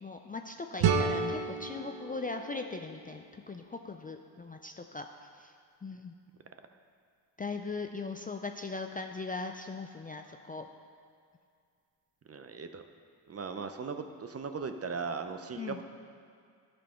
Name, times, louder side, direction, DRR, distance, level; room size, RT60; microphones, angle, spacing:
voice 1, 0.0-5.1 5.4-5.5 5.8-6.1 7.4-10.7 15.5-15.8, left 3 dB, 20° left, 4 dB, 0.4 m, -39 dB
sound 1, 0.8-3.7, right 5 dB, 75° right, 0.8 m, -32 dB
voice 2, 12.3-12.8 13.3-15.8, right 5 dB, 35° right, 7 dB, 0.6 m, -38 dB
12.5 x 4.4 x 5.7 m, 2.2 s
cardioid pair, 75°, 45 cm